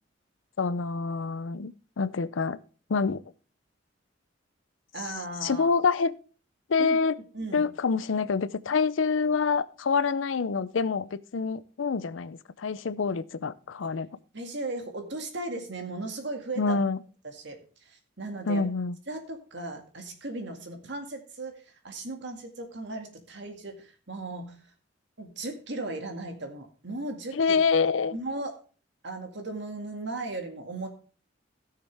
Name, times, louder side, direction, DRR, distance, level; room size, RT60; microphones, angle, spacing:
voice 1, 0.6-2.6 2.9-3.2 5.4-6.1 6.7-7.2 7.5-14.1 16.6-17.0 18.5-19.0 27.3-28.2, left 5 dB, 85° left, 17 dB, 0.5 m, -26 dB
voice 2, 4.9-5.7 6.8-7.0 7.3-7.7 14.3-16.8 17.2-18.6 19.1-24.6 25.2-27.6 28.1-28.5 29.0-30.9, right 2 dB, 65° right, 5 dB, 2.0 m, -37 dB
15.5 x 6.7 x 3.4 m, 0.39 s
head